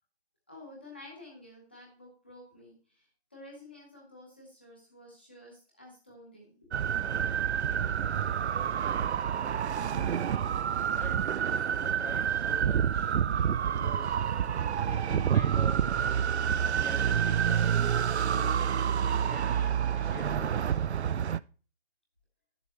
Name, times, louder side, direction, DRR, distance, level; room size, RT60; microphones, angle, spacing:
voice 1, 0.5-3.1 3.3-6.7 7.5-7.9 8.9-9.3, left 1 dB, 10° left, -2 dB, 0.9 m, -51 dB
sound 1, 6.7-21.4, right 8 dB, 85° right, 0.5 m, -28 dB
voice 2, 10.9-11.3 11.8-13.1 13.7-14.4 14.8-16.2 16.8-17.8 18.3-20.8, left 3 dB, 60° left, 2 dB, 2.7 m, -46 dB
11.0 x 7.0 x 3.0 m, 0.36 s
hypercardioid pair, 175°, 33 cm